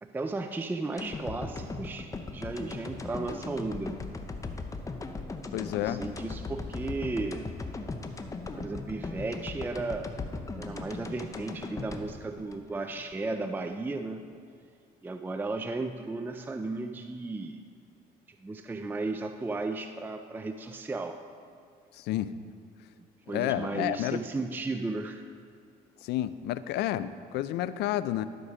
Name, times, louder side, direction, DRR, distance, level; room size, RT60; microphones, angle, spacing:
voice 1, 0.0-4.0 5.8-7.4 8.6-10.1 10.6-14.3 15.0-17.6 18.4-21.2 23.3-25.3, right 3 dB, 10° right, 7 dB, 0.4 m, -35 dB
sound 1, 1.0-13.2 13.6-13.7, left 3 dB, 20° left, 0.7 m, -38 dB
voice 2, 5.5-6.0 21.9-22.3 23.3-24.2 26.0-28.2, left 13 dB, 80° left, 14 dB, 0.4 m, -30 dB
12.0 x 4.9 x 6.3 m, 2.3 s
cardioid pair, 110°, 17 cm